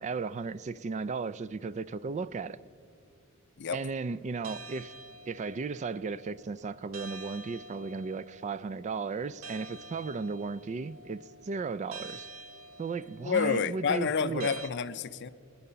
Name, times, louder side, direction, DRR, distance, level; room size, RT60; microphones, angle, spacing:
voice 1, 0.0-2.6 3.7-4.9 5.3-12.3 12.8-14.6, right 4 dB, 35° right, 0.3 m, -35 dB
sound 1, 4.4-14.7, right 2 dB, 90° right, 0.9 m, -48 dB
voice 2, 13.2-15.3, left 6 dB, 55° left, 0.5 m, -29 dB
20.5 x 10.0 x 5.6 m
head